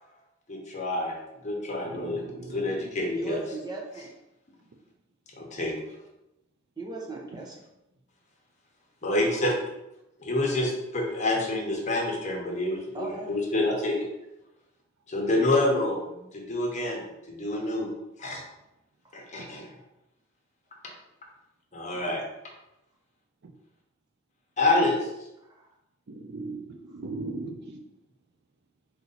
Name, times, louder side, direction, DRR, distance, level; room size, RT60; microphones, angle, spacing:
voice 1, 0.5-1.1 1.4-2.2 2.5-3.4 5.4-5.7 9.0-9.5 10.2-14.1 15.1-16.0 16.3-17.0 17.3-17.9 18.2-18.4 19.1-19.7 21.7-22.2 24.6-25.0, left 2 dB, 35° left, -1 dB, 1.0 m, -27 dB
voice 2, 1.8-3.4 19.4-19.5 21.9-22.0 26.1-27.8, right 3 dB, 55° right, 3 dB, 0.5 m, -39 dB
voice 3, 3.1-4.1 6.8-7.6 12.9-13.4 15.7-15.9 16.2-16.3 25.6-25.7, right 3 dB, 20° right, -1 dB, 0.8 m, -37 dB
4.2 x 2.7 x 4.0 m, 0.89 s
head